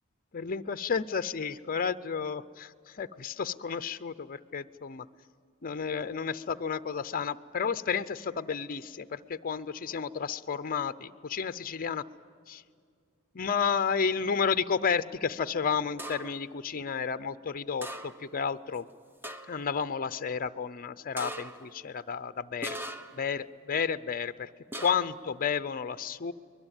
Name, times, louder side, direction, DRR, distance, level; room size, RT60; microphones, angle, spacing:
voice 1, 0.3-5.1 5.6-12.0 12.5-12.6 13.3-18.8 19.5-22.8 23.1-24.5 24.8-26.3, left 6 dB, 40° left, 13 dB, 0.6 m, -32 dB
sound 1, 16.0-16.5 17.8-18.4 18.7-18.8 19.2-19.7 21.2-21.7 22.6-23.3 24.7-25.2, right 1 dB, 10° right, 1.0 m, -40 dB
23.5 x 21.0 x 8.9 m, 2.2 s
head